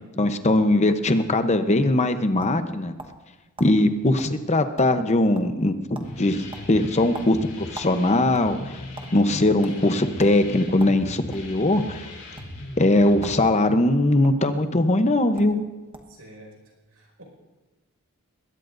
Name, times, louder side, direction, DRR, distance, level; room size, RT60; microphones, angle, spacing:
voice 1, 0.2-2.9 3.6-5.7 6.2-8.7 9.1-12.1 12.8-15.6, left 1 dB, 30° left, 9 dB, 0.8 m, -20 dB
sound 1, 1.8-3.3 3.6-3.7 4.2-4.3 4.6-5.1 5.3-5.7 5.9-6.1 6.5-8.0 8.3-9.1 9.6-9.8 10.2-10.4 10.8-11.5 12.3-12.5 13.2-13.4 13.7-14.3 15.0-15.1 15.4-15.6 15.9-16.2, right 2 dB, 25° right, 1.2 m, -41 dB
sound 2, 6.0-13.4, left 1 dB, 75° left, 4.2 m, -38 dB
voice 2, 16.1-16.5 16.9-17.2, right 1 dB, 75° right, 1 dB, 5.2 m, -47 dB
21.0 x 17.0 x 2.6 m, 1.2 s
head